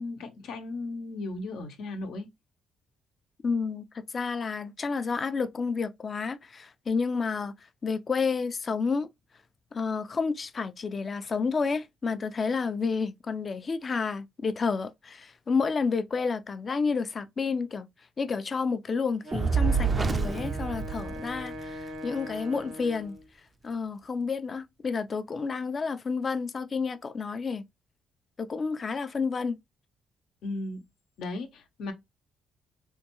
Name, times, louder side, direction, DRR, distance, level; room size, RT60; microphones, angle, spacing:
voice 1, 0.0-2.3 30.4-30.8 31.2-31.9, left 2 dB, 80° left, 0.8 m, -36 dB
voice 2, 3.4-7.5 7.8-9.1 9.7-17.9 18.2-23.2 23.6-27.6 28.4-29.6, left 5 dB, 40° left, 0.4 m, -30 dB
Wind instrument woodwind instrument, 19.2-23.3, equal, 80° right, 1.1 m, -41 dB
Fire, 19.3-21.8, right 5 dB, 25° right, 0.4 m, -27 dB
3.6 x 2.2 x 2.9 m
cardioid pair, 90°, 0 cm